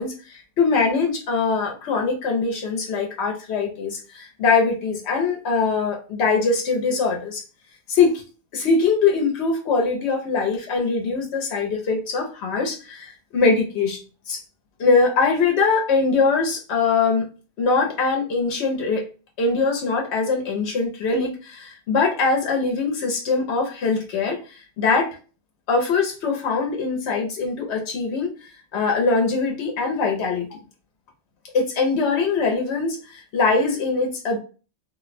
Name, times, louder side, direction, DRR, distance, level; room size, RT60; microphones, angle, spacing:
voice 1, 0.0-7.4 7.9-8.2 8.5-14.0 14.3-14.4 14.8-17.3 17.6-19.0 19.4-25.1 25.7-30.5 31.5-34.4, left 4 dB, 80° left, 1 dB, 1.0 m, -22 dB
2.5 x 2.1 x 3.9 m, 0.35 s
omnidirectional pair, 1.1 m